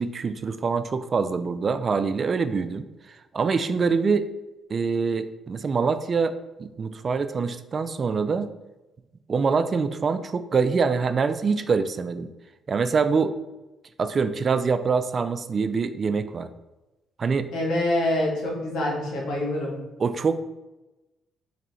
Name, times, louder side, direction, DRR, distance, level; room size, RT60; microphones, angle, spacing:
voice 1, 0.0-4.3 4.7-8.5 9.3-12.3 12.7-13.3 14.0-16.5 17.2-17.5 20.0-20.4, right 5 dB, 40° right, 11 dB, 0.3 m, -25 dB
voice 2, 17.5-19.8, left 1 dB, 80° left, -2 dB, 1.4 m, -26 dB
4.2 x 3.1 x 4.0 m, 1.0 s
cardioid pair, 90°, 0 cm